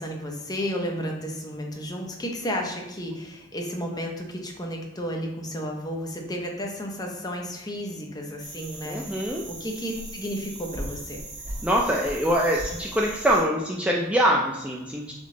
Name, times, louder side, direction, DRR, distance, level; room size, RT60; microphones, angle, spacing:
voice 1, 0.0-11.2, equal, 20° left, 1 dB, 0.7 m, -32 dB
sound 1, 8.4-13.4, right 1 dB, 40° right, 1.2 m, -38 dB
voice 2, 8.8-9.4 11.6-15.1, equal, 5° right, -2 dB, 0.3 m, -24 dB
3.7 x 3.6 x 3.7 m, 0.97 s
head